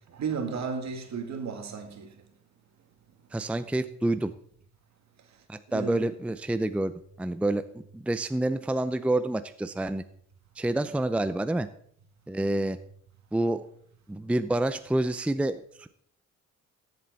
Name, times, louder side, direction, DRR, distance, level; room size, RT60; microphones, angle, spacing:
voice 1, 0.1-2.1 5.7-6.1, right 6 dB, 65° right, 2.0 m, -33 dB
voice 2, 3.3-4.3 5.5-7.6 7.9-10.0 10.6-11.7 12.3-12.8 13.3-13.6 14.1-15.9, right 1 dB, 5° right, 0.5 m, -28 dB
14.5 x 7.7 x 4.1 m
cardioid pair, 90°, 30 cm